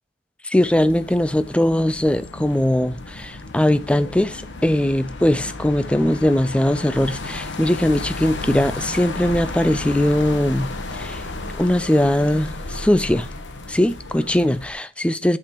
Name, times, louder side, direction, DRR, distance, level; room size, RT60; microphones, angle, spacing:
voice 1, 0.4-11.2 11.5-13.3 13.7-15.4, left 1 dB, 5° left, 0.3 m, -20 dB
sound 1, 0.6-14.7, left 2 dB, 75° left, 1.0 m, -33 dB
8.9 x 6.7 x 2.9 m
head